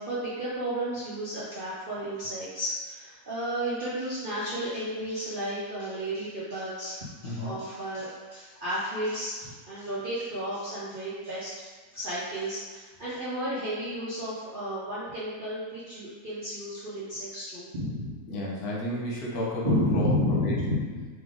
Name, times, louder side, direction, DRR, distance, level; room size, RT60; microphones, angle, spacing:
voice 1, 0.0-18.1 19.6-21.1, equal, 50° right, -10 dB, 0.6 m, -32 dB
voice 2, 7.2-7.5 18.3-20.5, left 1 dB, 75° left, -4 dB, 1.3 m, -32 dB
3.3 x 2.9 x 3.7 m, 1.5 s
omnidirectional pair, 1.7 m